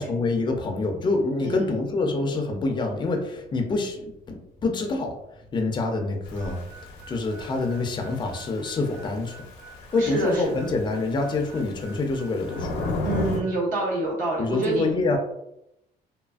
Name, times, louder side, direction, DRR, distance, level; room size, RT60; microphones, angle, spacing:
voice 1, 0.0-5.2 5.5-6.6 7.1-9.4 9.9-12.8 14.4-15.2, left 3 dB, 25° left, 3 dB, 0.4 m, -26 dB
voice 2, 1.4-1.8 10.0-10.6 13.0-14.9, right 2 dB, 55° right, -3 dB, 0.6 m, -27 dB
Thunder / Rain, 6.3-13.4, left 2 dB, 80° left, 0.6 m, -35 dB
Harmonica, 6.4-14.0, right 4 dB, 85° right, 0.7 m, -48 dB
2.6 x 2.4 x 2.3 m, 0.83 s
cardioid pair, 150°, 17 cm